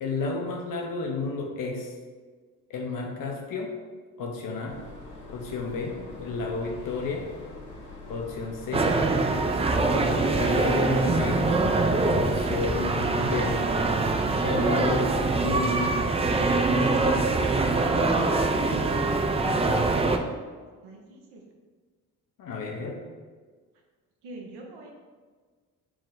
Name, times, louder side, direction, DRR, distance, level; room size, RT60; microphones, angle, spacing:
voice 1, 0.0-1.9 2.7-3.7 4.2-4.8 5.3-7.3 8.1-8.9 9.8-11.5 12.1-13.6 14.4-15.1 15.4-16.0 22.4-23.0, left 3 dB, 55° left, 1 dB, 0.8 m, -31 dB
sound 1, 4.7-11.4, left 2 dB, 70° left, 1.2 m, -41 dB
voice 2, 5.9-6.2 20.8-21.4 24.2-24.9, right 2 dB, 80° right, 0 dB, 0.7 m, -45 dB
sound 2, 8.7-20.2, right 3 dB, 15° right, 0.3 m, -24 dB
4.5 x 2.0 x 3.8 m, 1.5 s
supercardioid pair, 60°, 39 cm